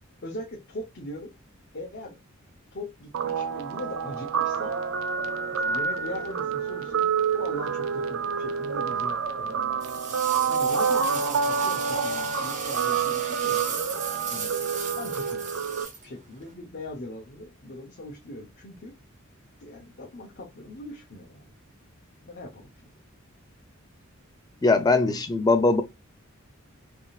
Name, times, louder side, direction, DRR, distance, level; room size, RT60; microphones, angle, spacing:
voice 1, 0.2-1.3 1.7-2.2 2.7-4.7 5.4-9.8 10.2-13.6 14.3-14.5 15.0-15.4 16.0-18.9 19.6-21.4 22.2-22.7, left 1 dB, 50° left, 0.7 m, -40 dB
Guitar, 3.1-15.9, right 6 dB, 70° right, 0.4 m, -28 dB
sound 1, 9.8-16.5, right 5 dB, 35° right, 0.7 m, -36 dB
voice 2, 24.6-25.8, left 3 dB, 20° left, 0.4 m, -21 dB
3.5 x 2.6 x 2.3 m
head